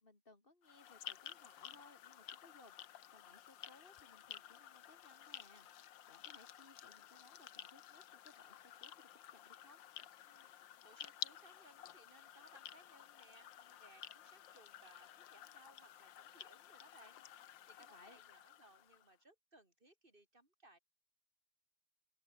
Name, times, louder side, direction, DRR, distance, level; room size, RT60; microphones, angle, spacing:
voice 1, 0.0-9.8 17.8-18.2, left 2 dB, 30° left, 2.9 m, -65 dB
sound 1, 0.6-19.1, left 11 dB, 80° left, 1.7 m, -53 dB
voice 2, 10.3-20.8, right 2 dB, 25° right, 3.7 m, -66 dB
open air
omnidirectional pair, 2.0 m